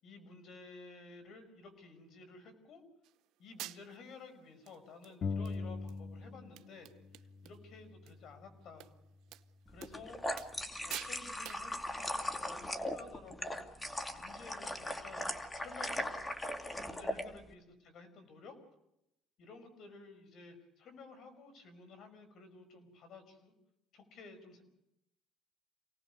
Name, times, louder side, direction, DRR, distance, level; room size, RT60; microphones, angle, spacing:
voice 1, 0.0-2.8 3.4-8.9 9.7-10.2 10.8-13.8 14.1-16.1 16.7-18.6 19.4-23.5 23.9-24.6, left 4 dB, 60° left, 9 dB, 5.5 m, -53 dB
sound 1, 3.0-3.1 3.6-4.1 4.7-4.8 5.0-5.6 5.9-6.0 6.3-6.4 6.6-7.6 7.8-8.1 8.8-8.9 9.3-9.4 9.8-10.0 10.4-10.6 10.9-11.2 11.4-11.7, right 15 dB, 75° right, 0.8 m, -47 dB
sound 2, 5.2-6.7 7.0-8.7, left 4 dB, 45° left, 0.8 m, -42 dB
sound 3, 9.8-17.3, left 1 dB, 15° left, 2.3 m, -39 dB
28.0 x 18.5 x 6.7 m, 0.82 s
cardioid pair, 100°, 0 cm